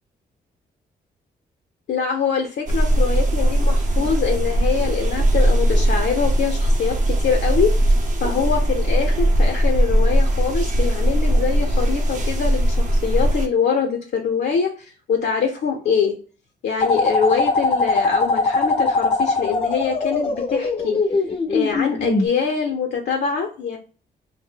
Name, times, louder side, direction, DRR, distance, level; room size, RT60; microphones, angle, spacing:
voice 1, 1.9-7.9 8.2-16.1 16.6-21.0 21.5-23.8, left 6 dB, 70° left, 1 dB, 0.6 m, -24 dB
sound 1, 2.7-13.5, right 1 dB, 45° right, 0.8 m, -19 dB
sound 2, 16.8-22.3, left 3 dB, 30° left, 0.5 m, -21 dB
2.6 x 2.1 x 3.6 m, 0.38 s
cardioid pair, 100°, 18 cm